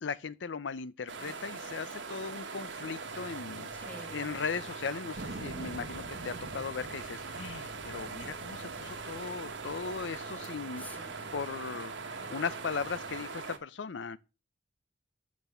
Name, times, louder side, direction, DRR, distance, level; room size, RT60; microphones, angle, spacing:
voice 1, 0.0-10.9 11.3-14.2, left 5 dB, 80° left, 0.6 m, -38 dB
sound 1, 1.1-13.6, right 4 dB, 80° right, 1.2 m, -41 dB
sound 2, 3.0-13.2, right 1 dB, 25° left, 3.2 m, -55 dB
voice 2, 3.8-4.3 10.8-11.4, left 2 dB, 10° left, 1.2 m, -48 dB
Thunder, 5.1-10.3, right 2 dB, 65° right, 0.9 m, -47 dB
6.2 x 6.0 x 6.7 m
head